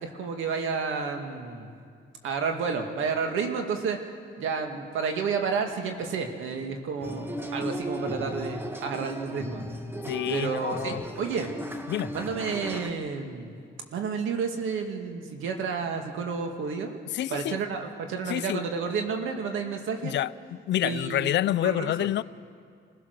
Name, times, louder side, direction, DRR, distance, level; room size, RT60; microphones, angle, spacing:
voice 1, 0.0-1.7 2.2-4.0 4.4-9.6 10.3-11.5 12.1-13.6 13.9-17.0 17.3-20.1 20.8-21.9, right 5 dB, 80° right, 2.2 m, -31 dB
sound 1, 7.0-12.9, equal, 10° right, 1.3 m, -36 dB
voice 2, 10.1-11.0 11.9-12.1 17.1-17.6 18.3-18.7 20.0-20.3 20.7-22.2, left 13 dB, 65° left, 0.5 m, -28 dB
26.0 x 16.5 x 6.7 m
cardioid pair, 90°, 20 cm